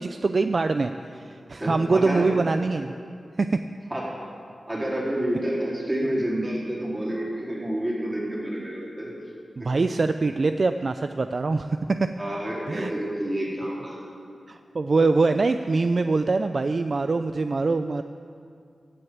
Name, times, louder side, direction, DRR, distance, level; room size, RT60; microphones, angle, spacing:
voice 1, 0.0-2.9 3.4-3.6 9.6-12.1 12.7-12.9 14.5-18.0, right 3 dB, 55° right, 9 dB, 0.4 m, -24 dB
voice 2, 1.6-2.3 3.9-4.1 4.7-9.1 9.6-9.7 12.2-14.1, right 1 dB, 20° right, -5 dB, 4.2 m, -29 dB
15.0 x 6.7 x 8.7 m, 2.4 s
wide cardioid pair, 70°, 0 cm